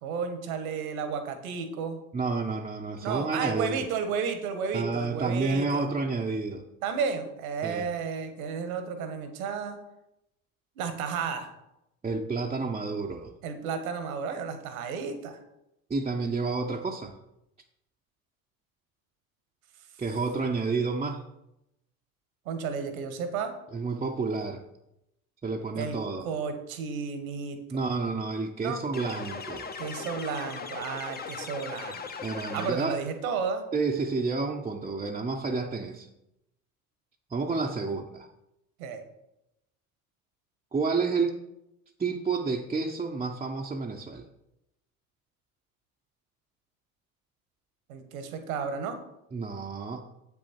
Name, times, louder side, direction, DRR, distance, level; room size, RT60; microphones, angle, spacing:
voice 1, 0.0-2.0 3.0-5.8 6.8-9.8 10.8-11.5 13.4-15.4 22.4-23.5 25.8-25.9 26.2-27.9 28.6-28.8 29.8-32.0 32.5-33.6 38.8-39.0 47.9-49.0, right 6 dB, 75° right, 7 dB, 1.5 m, -32 dB
voice 2, 2.1-3.9 4.7-6.6 7.6-7.9 12.0-13.3 15.9-17.1 20.0-21.2 23.7-24.6 25.4-26.3 27.7-29.7 32.2-33.0 33.7-36.1 37.3-38.3 40.7-41.4 42.0-44.3 49.3-50.0, right 4 dB, 15° right, 0 dB, 0.8 m, -30 dB
sound 1, 28.9-33.1, left 5 dB, 20° left, 0.9 m, -39 dB
7.9 x 6.4 x 4.4 m, 0.85 s
hypercardioid pair, 75°, 43 cm